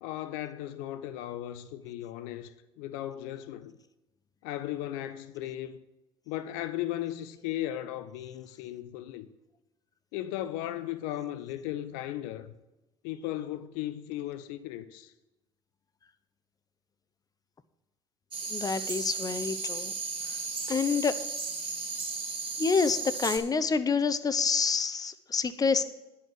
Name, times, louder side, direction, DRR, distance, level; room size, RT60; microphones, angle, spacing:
voice 1, 0.0-3.8 4.4-5.8 6.3-9.3 10.1-12.5 13.0-15.1, left 13 dB, 70° left, 0.6 m, -36 dB
sound 1, 18.3-23.4, right 4 dB, 35° right, 2.8 m, -35 dB
voice 2, 18.5-19.9 20.7-21.2 22.6-25.8, left 5 dB, 25° left, 0.8 m, -27 dB
10.5 x 5.6 x 7.7 m
hypercardioid pair, 65°, 15 cm